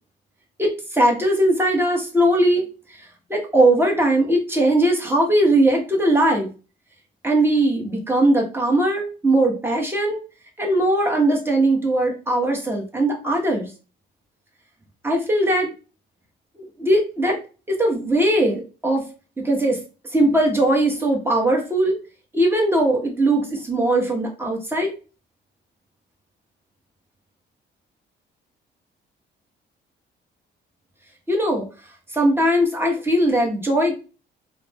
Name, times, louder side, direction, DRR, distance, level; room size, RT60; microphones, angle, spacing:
voice 1, 0.6-2.7 3.3-6.5 7.2-10.2 10.6-13.7 15.0-15.7 16.6-17.4 17.7-19.0 19.4-19.8 20.1-22.0 22.3-24.9 31.3-31.6 32.1-34.0, right 1 dB, 10° right, 0 dB, 1.0 m, -19 dB
2.5 x 2.1 x 3.3 m, 0.33 s
cardioid pair, 90°, 20 cm